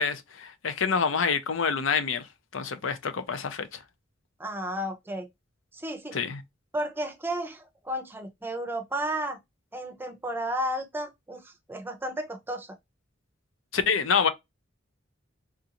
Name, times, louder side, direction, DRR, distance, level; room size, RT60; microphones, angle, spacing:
voice 1, 0.0-2.3 2.5-3.8 6.1-6.4 13.7-14.3, left 6 dB, 85° left, 0.6 m, -27 dB
voice 2, 4.4-5.3 5.7-6.2 6.7-9.4 9.7-12.8, right 1 dB, 10° right, 0.6 m, -33 dB
3.6 x 2.5 x 2.8 m
head